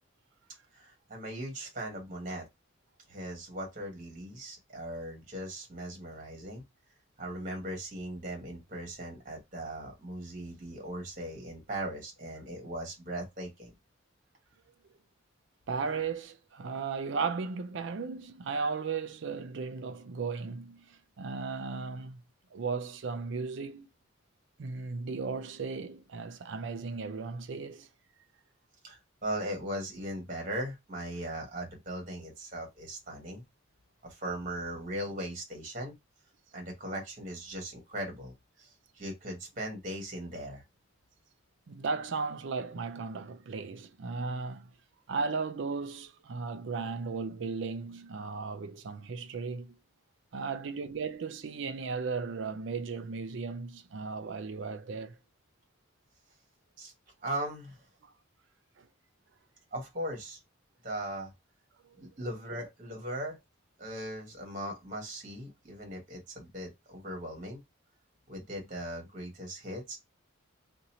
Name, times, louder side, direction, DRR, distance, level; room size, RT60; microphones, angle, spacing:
voice 1, 0.7-2.5 3.1-6.6 7.2-13.7 28.8-33.4 34.0-35.9 36.5-38.7 38.9-40.6 56.8-56.9 57.2-57.8 59.7-60.4 60.8-61.3 62.0-63.4 63.8-67.6 68.3-70.0, right 1 dB, 40° right, 1.2 m, -39 dB
voice 2, 15.7-22.2 22.5-23.9 24.6-27.9 41.7-44.7 45.1-49.7 50.3-55.2 58.0-58.1 58.8-58.9, right 4 dB, 60° right, 0.4 m, -36 dB
2.8 x 2.6 x 4.1 m
head